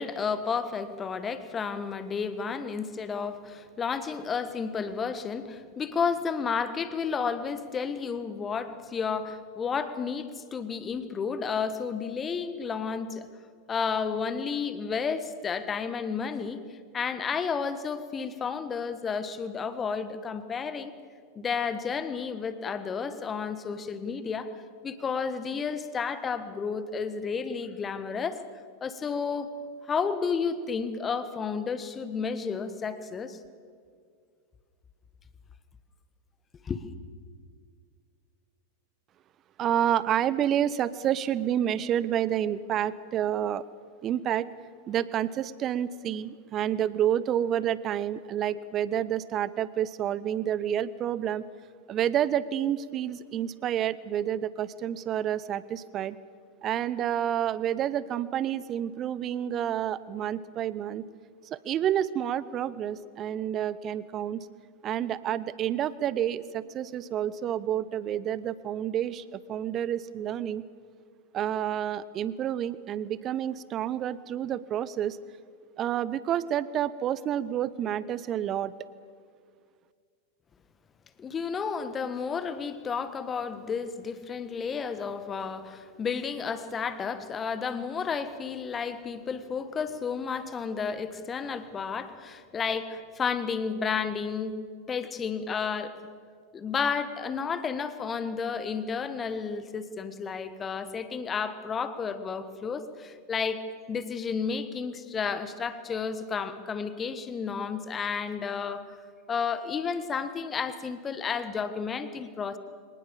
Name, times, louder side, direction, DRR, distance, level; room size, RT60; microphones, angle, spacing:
voice 1, 0.0-13.3 13.7-20.9 21.3-24.5 24.8-28.4 28.8-29.5 29.9-33.4 36.6-36.8 81.2-94.6 94.9-96.0 96.5-103.6 103.9-108.9 109.3-112.6, left 6 dB, 20° left, 12 dB, 1.5 m, -32 dB
voice 2, 39.6-43.6 44.0-44.5 44.9-51.4 51.9-56.2 56.6-61.0 61.5-64.5 64.8-70.6 71.3-75.2 75.8-78.7, right 10 dB, 30° right, 18 dB, 0.8 m, -29 dB
23.5 x 19.5 x 7.3 m, 2.1 s
figure-of-eight pair, 90°, 0 cm